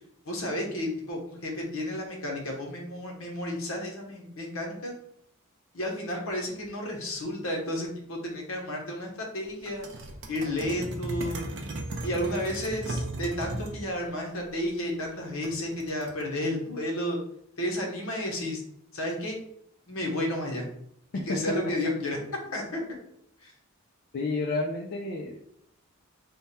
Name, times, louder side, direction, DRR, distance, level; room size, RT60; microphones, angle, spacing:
voice 1, 0.3-4.9 5.7-9.8 10.3-11.4 12.0-17.2 17.6-18.6 18.9-19.4 19.9-20.7 21.3-22.2 22.5-22.8 23.4-23.5, left 1 dB, 70° left, 0 dB, 1.0 m, -32 dB
sound 1, 9.7-13.8 15.4-16.2, right 1 dB, 55° right, 0.5 m, -36 dB
voice 2, 24.1-25.6, left 3 dB, 50° left, 0 dB, 0.4 m, -31 dB
3.4 x 2.2 x 4.2 m, 0.73 s
head